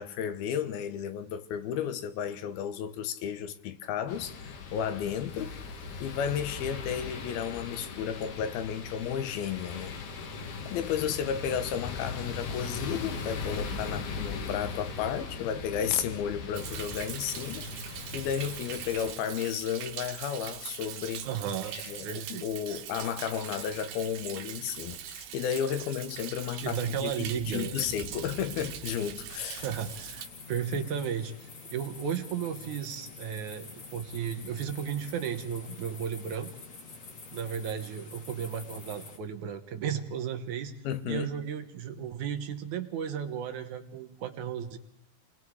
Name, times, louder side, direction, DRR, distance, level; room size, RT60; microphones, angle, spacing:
voice 1, 0.0-5.5 6.0-10.0 10.7-21.3 21.7-29.7 40.8-41.3, left 8 dB, 80° left, 2.9 m, -33 dB
sound 1, 4.1-19.1, left 4 dB, 60° left, 3.0 m, -39 dB
Thunder, 16.5-30.3, right 9 dB, 80° right, 3.1 m, -41 dB
voice 2, 21.2-21.7 22.0-22.8 26.6-27.9 29.6-36.5 37.3-40.7 41.1-44.8, right 7 dB, 65° right, 2.2 m, -34 dB
sound 2, 29.5-39.2, left 4 dB, 35° left, 2.2 m, -47 dB
29.0 x 20.5 x 4.8 m
omnidirectional pair, 4.3 m